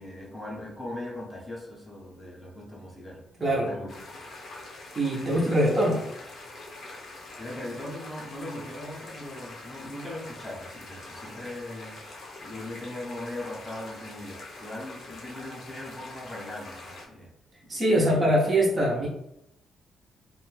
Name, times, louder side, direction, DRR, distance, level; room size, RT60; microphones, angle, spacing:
voice 1, 0.0-3.9 5.2-5.4 7.4-12.0 12.4-17.3 18.0-18.3, left 1 dB, 10° left, -4 dB, 0.6 m, -39 dB
voice 2, 3.4-3.7 5.0-6.0 17.7-19.1, right 1 dB, 25° right, -4 dB, 0.5 m, -23 dB
sound 1, 3.9-17.1, left 2 dB, 50° left, 0.5 m, -44 dB
2.5 x 2.1 x 3.1 m, 0.82 s
cardioid pair, 150°, 0 cm